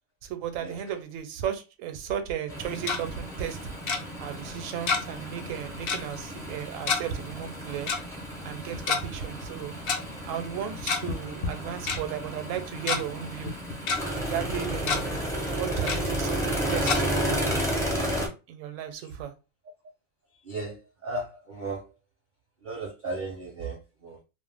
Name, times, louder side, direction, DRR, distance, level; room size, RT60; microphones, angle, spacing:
voice 1, 0.2-3.6 4.2-7.9 8.4-9.7 10.3-13.5 14.2-15.2 15.6-17.7 18.5-19.3, right 9 dB, 75° right, 0.9 m, -35 dB
sound 1, 2.5-18.3, right 1 dB, 5° left, 0.4 m, -32 dB
Tick-tock, 2.6-3.0 3.9-4.0 4.9-5.2 5.5-5.6 5.9-6.1 6.9-7.0 7.9-8.0 8.7-9.0 9.9-10.0 10.7-11.1 11.4-11.5 11.9-12.0 12.5-13.0 13.5-14.0 14.4-14.5 14.8-15.0 15.9-16.0 16.9-17.0, left 5 dB, 60° left, 0.7 m, -27 dB
voice 2, 20.4-20.8 21.0-21.9 22.6-24.2, right 2 dB, 55° right, 0.6 m, -35 dB
2.5 x 2.1 x 3.3 m
omnidirectional pair, 1.4 m